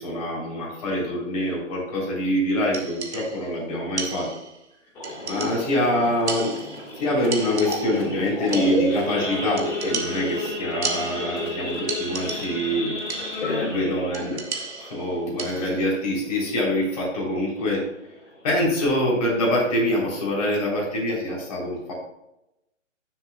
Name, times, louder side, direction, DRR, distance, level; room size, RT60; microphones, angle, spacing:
voice 1, 0.0-4.3 5.2-6.6 6.9-17.8 18.4-21.9, left 1 dB, 30° left, -4 dB, 3.5 m, -25 dB
sound 1, 2.7-3.5 4.0-4.7 5.0-5.9 6.3-7.0 7.3-8.2 8.5-9.1 9.6-11.5 11.9-12.7 13.1-13.6 14.1-15.9, right 4 dB, 55° right, 1.3 m, -34 dB
sound 2, 5.0-13.9, left 3 dB, 85° left, 2.8 m, -39 dB
Idling / Accelerating revving vroom / Sawing, 5.0-16.0 16.4-16.6 16.9-17.0 17.5-17.7 18.2-18.3 18.5-18.9, left 2 dB, 10° left, 1.8 m, -32 dB
14.5 x 6.9 x 2.3 m, 0.89 s
hypercardioid pair, 175°, 38 cm